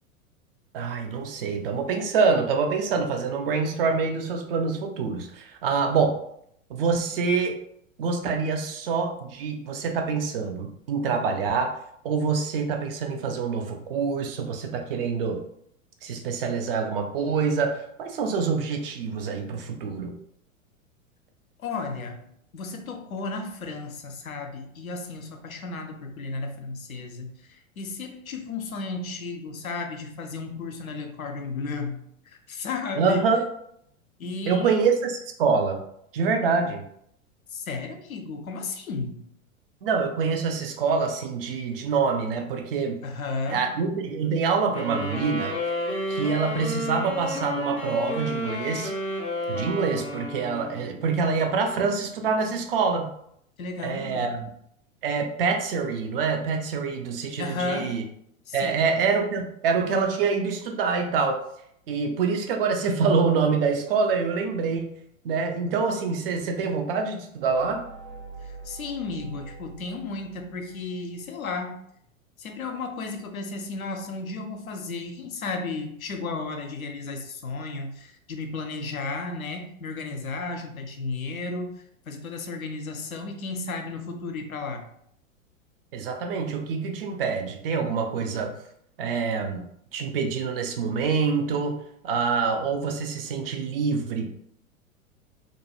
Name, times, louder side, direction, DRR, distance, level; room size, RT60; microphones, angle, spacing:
voice 1, 0.7-6.2 6.7-7.5 8.0-11.7 12.0-15.4 16.0-20.1 33.0-33.4 34.5-35.8 36.1-36.8 39.8-43.0 43.5-45.5 46.1-48.9 49.5-53.1 53.8-54.4 55.0-58.0 58.5-61.4 61.9-64.9 65.2-67.8 85.9-88.5 89.0-89.6 89.9-94.3, right 5 dB, 45° right, 4 dB, 0.5 m, -26 dB
voice 2, 21.6-22.2 22.5-27.3 27.8-32.0 32.5-33.3 34.2-34.9 37.5-39.2 43.0-43.7 53.6-54.5 57.4-57.9 58.5-58.8 68.6-71.8 72.4-84.9, left 3 dB, 85° left, 5 dB, 0.6 m, -33 dB
sound 1, 44.7-51.1, left 1 dB, 15° left, 0.4 m, -31 dB
sound 2, 67.4-71.2, right 4 dB, 80° right, 1.4 m, -44 dB
2.5 x 2.2 x 2.8 m, 0.71 s
figure-of-eight pair, 95°, 41 cm